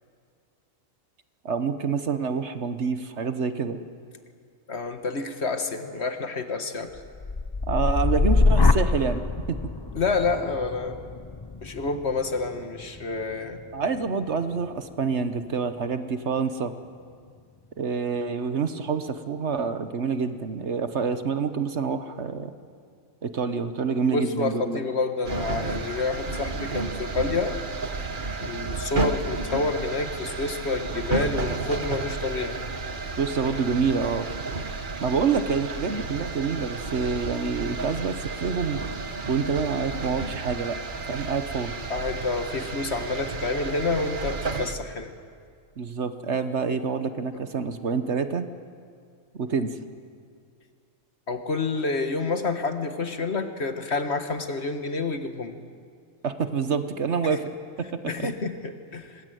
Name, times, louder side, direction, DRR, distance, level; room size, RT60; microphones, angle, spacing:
voice 1, 1.4-3.8 7.7-9.2 13.7-16.7 17.8-22.5 23.2-24.8 33.2-34.3 35.0-38.8 39.3-40.8 41.1-41.8 45.8-48.5 49.3-49.8 56.2-57.5 57.8-57.9 58.2-58.3, right 5 dB, 55° right, 10 dB, 1.4 m, -27 dB
voice 2, 4.7-6.9 9.9-11.0 11.6-13.6 24.1-27.6 28.4-32.6 41.9-45.1 51.3-55.5 58.1-59.2, left 3 dB, 50° left, 8 dB, 1.8 m, -28 dB
sound 1, 6.9-15.0 15.4-15.9, left 3 dB, 25° left, 0.6 m, -26 dB
sound 2, 25.2-44.7, right 3 dB, 40° right, 1.3 m, -32 dB
25.5 x 20.5 x 9.3 m, 2.1 s
omnidirectional pair, 1.4 m